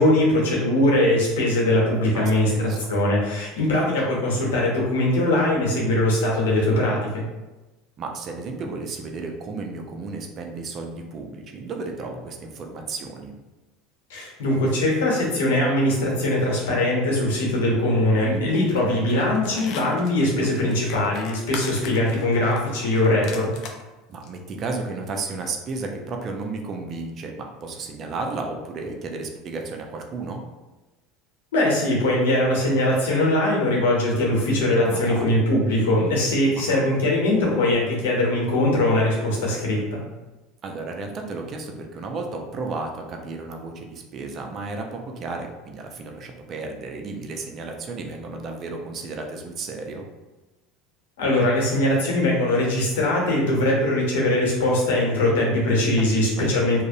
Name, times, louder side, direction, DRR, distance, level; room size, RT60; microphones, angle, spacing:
voice 1, 0.0-7.2 14.1-23.5 31.5-40.0 51.2-56.8, left 1 dB, 85° left, -2 dB, 0.8 m, -21 dB
voice 2, 2.1-2.9 5.7-5.9 8.0-13.3 18.5-19.7 20.3-20.8 24.1-30.4 34.9-35.4 36.6-36.8 40.6-50.1 56.0-56.5, right 3 dB, 45° right, 3 dB, 0.4 m, -33 dB
sound 1, 18.5-18.8 19.1-23.8 24.2-24.3, left 5 dB, 55° left, 0.4 m, -39 dB
2.5 x 2.0 x 2.7 m, 1.1 s
supercardioid pair, 95°, 0 cm